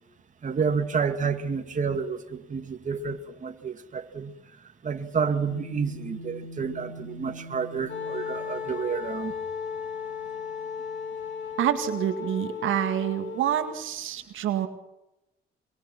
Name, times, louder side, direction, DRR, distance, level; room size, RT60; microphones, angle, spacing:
voice 1, 0.4-4.3 4.8-9.3, right 6 dB, 40° right, 6 dB, 2.4 m, -29 dB
sound 1, 5.5-12.2, equal, 90° left, 4.7 m, -45 dB
Wind instrument woodwind instrument, 7.9-13.8, left 7 dB, 70° left, 2.9 m, -35 dB
voice 2, 11.6-14.7, right 11 dB, 80° right, 7 dB, 2.1 m, -27 dB
24.0 x 24.0 x 6.1 m, 0.89 s
cardioid pair, 90°, 20 cm